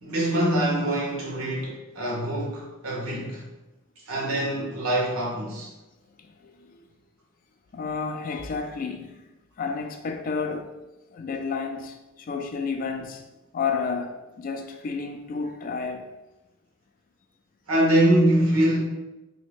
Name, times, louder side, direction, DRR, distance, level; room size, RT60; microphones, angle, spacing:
voice 1, 0.0-3.4 4.1-5.7 17.7-18.8, right 1 dB, 75° right, 1.1 m, -24 dB
voice 2, 6.2-6.8 7.7-9.2 9.6-10.7 11.1-13.2 13.5-16.1, left 5 dB, 40° left, 0.3 m, -31 dB
3.0 x 2.7 x 3.5 m
head